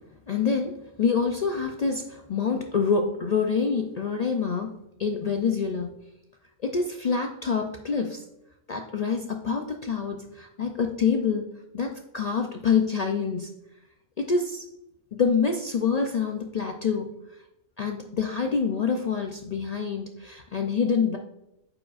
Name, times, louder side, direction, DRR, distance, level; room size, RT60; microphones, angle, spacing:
voice 1, 0.3-4.7 5.0-5.9 6.6-8.2 8.7-11.5 11.7-13.5 14.2-14.6 15.1-17.1 17.8-21.2, left 5 dB, 70° left, 3 dB, 0.3 m, -26 dB
8.6 x 4.9 x 2.4 m, 0.86 s
omnidirectional pair, 1.3 m